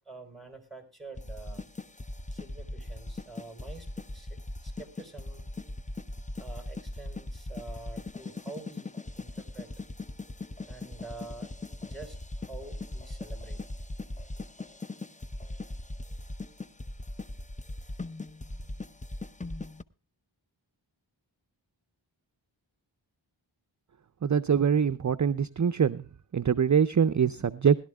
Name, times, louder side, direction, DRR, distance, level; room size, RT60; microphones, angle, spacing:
voice 1, 0.1-1.6 2.3-3.9 4.1-5.5 6.4-9.7 10.7-11.5 11.8-13.7, right 3 dB, ahead, 4 dB, 4.1 m, -47 dB
sound 1, 1.2-19.8, left 2 dB, 15° left, 0.5 m, -39 dB
voice 2, 24.2-26.0 26.3-27.8, right 7 dB, 40° right, 12 dB, 0.5 m, -24 dB
21.0 x 12.0 x 2.3 m, 0.35 s
wide cardioid pair, 45°, 47 cm